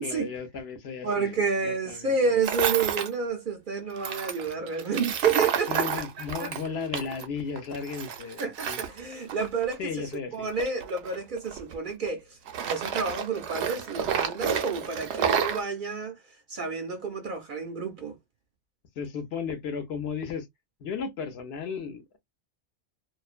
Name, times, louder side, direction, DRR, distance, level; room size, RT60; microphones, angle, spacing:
voice 1, 0.0-2.4 5.7-8.8 9.8-10.5 19.0-20.5 20.8-22.2, left 6 dB, 70° left, 0.9 m, -35 dB
voice 2, 1.0-5.9 6.2-6.5 8.4-9.8 10.3-16.2 16.5-18.2, right 5 dB, 60° right, 0.6 m, -30 dB
Tools, 2.4-3.1 4.0-7.3 7.6-9.8 10.5-12.1 12.5-15.6, right 7 dB, 80° right, 0.9 m, -30 dB
2.5 x 2.1 x 2.4 m
omnidirectional pair, 1.2 m